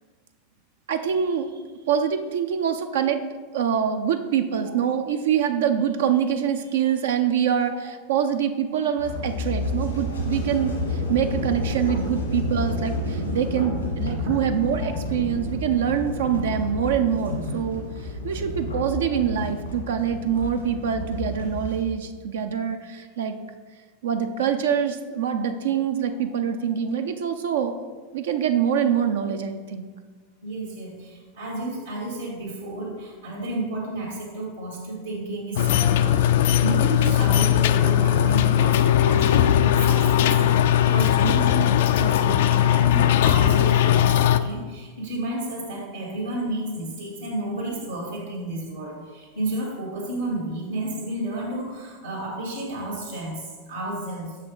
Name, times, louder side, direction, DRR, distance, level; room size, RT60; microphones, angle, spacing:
voice 1, 0.9-1.5 1.9-3.2 3.5-23.4 24.0-27.8 28.1-29.8 41.2-41.4, right 8 dB, 70° right, 7 dB, 0.4 m, -25 dB
sound 1, 9.0-21.8, left 1 dB, 90° left, 1.8 m, -30 dB
voice 2, 30.4-54.4, right 1 dB, 90° right, -7 dB, 1.9 m, -32 dB
sound 2, 35.6-44.4, left 11 dB, 65° left, 0.3 m, -19 dB
6.1 x 5.5 x 3.8 m, 1.4 s
hypercardioid pair, 90°, 0 cm